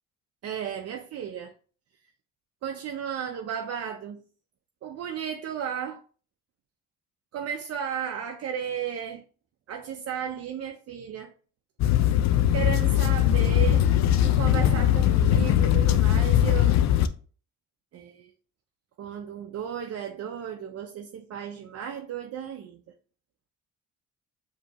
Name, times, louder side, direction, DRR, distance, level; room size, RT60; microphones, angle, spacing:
voice 1, 0.4-1.5 2.6-4.2 4.8-6.0 7.3-9.2 9.7-11.3 12.5-13.9 14.2-16.7 17.9-18.3 19.0-22.8, right 8 dB, 55° right, 0.5 m, -34 dB
sound 1, 11.8-17.1, left 11 dB, 65° left, 0.4 m, -21 dB
5.0 x 2.9 x 2.9 m
cardioid pair, 90°, 30 cm